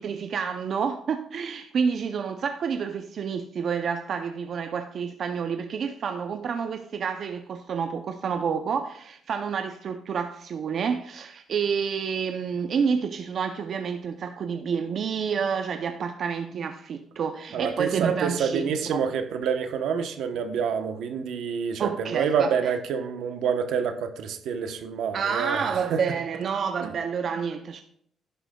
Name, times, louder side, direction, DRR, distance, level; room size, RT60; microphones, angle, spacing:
voice 1, 0.0-19.1 21.8-22.7 25.1-27.8, right 6 dB, 60° right, 0.5 m, -29 dB
voice 2, 17.5-26.0 26.8-26.9, right 6 dB, 80° right, 0.9 m, -28 dB
11.0 x 10.0 x 2.3 m
cardioid pair, 90°, 0 cm